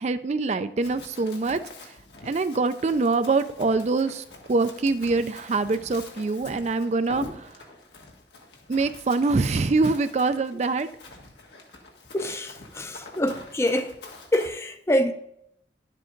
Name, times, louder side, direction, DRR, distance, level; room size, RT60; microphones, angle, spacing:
voice 1, 0.0-1.9 2.2-7.5 8.7-10.9, right 3 dB, 40° right, 0.4 m, -24 dB
Run, 0.8-14.5, left 2 dB, 85° left, 1.7 m, -45 dB
voice 2, 12.1-13.9 14.3-15.1, equal, 15° left, 0.5 m, -25 dB
11.5 x 7.5 x 3.8 m
head